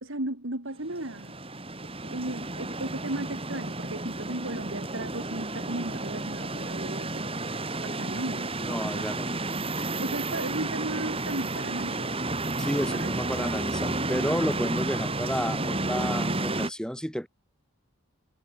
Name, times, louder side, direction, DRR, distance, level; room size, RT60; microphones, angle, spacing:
voice 1, 0.0-1.3 2.0-7.3 7.8-8.5 8.9-9.1 10.0-12.1 12.9-13.1 13.4-13.5, right 1 dB, 65° right, 2.9 m, -35 dB
sound 1, 0.9-16.7, right 2 dB, 25° right, 5.7 m, -31 dB
voice 2, 8.6-9.3 12.6-17.3, equal, 5° left, 7.1 m, -31 dB
head